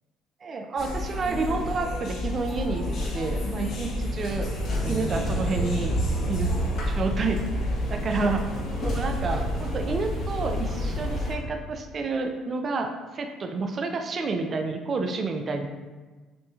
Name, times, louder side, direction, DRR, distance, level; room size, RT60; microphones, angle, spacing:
voice 1, 0.4-3.9 4.2-4.5 4.8-6.0 6.3-6.5 6.9-7.4 7.9-8.5 8.8-15.7, right 3 dB, 40° right, 4 dB, 0.4 m, -29 dB
sound 1, 0.8-11.3, equal, 70° left, 1.1 m, -29 dB
6.0 x 2.9 x 2.4 m, 1.3 s
cardioid pair, 95°, 0 cm